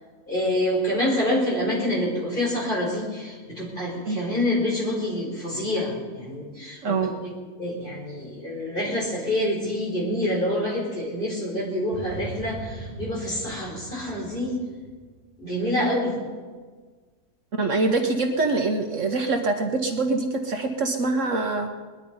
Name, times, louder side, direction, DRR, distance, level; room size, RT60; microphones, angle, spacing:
voice 1, 0.3-7.3 7.6-14.6 15.4-16.2, left 1 dB, 35° left, -4 dB, 4.9 m, -27 dB
voice 2, 6.8-7.1 17.5-21.7, right 3 dB, 60° right, 4 dB, 1.3 m, -24 dB
sound 1, 11.9-15.4, right 1 dB, 10° left, 2.8 m, -40 dB
20.5 x 11.5 x 5.5 m, 1.5 s
omnidirectional pair, 1.6 m